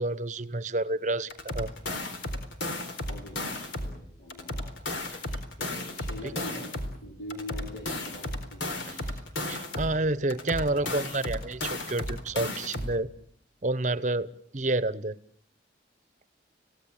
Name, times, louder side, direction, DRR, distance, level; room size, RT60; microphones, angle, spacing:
voice 1, 0.0-1.7 8.9-9.0 9.5-13.1 13.6-14.3 14.5-15.2, right 2 dB, 40° right, 16 dB, 1.0 m, -29 dB
sound 1, 1.3-4.0 4.3-7.0 7.3-10.0 10.3-13.0, left 1 dB, 80° left, 4.2 m, -34 dB
voice 2, 3.1-5.0 5.6-9.1, left 1 dB, 65° left, 0 dB, 5.3 m, -44 dB
29.5 x 17.5 x 8.8 m, 0.63 s
head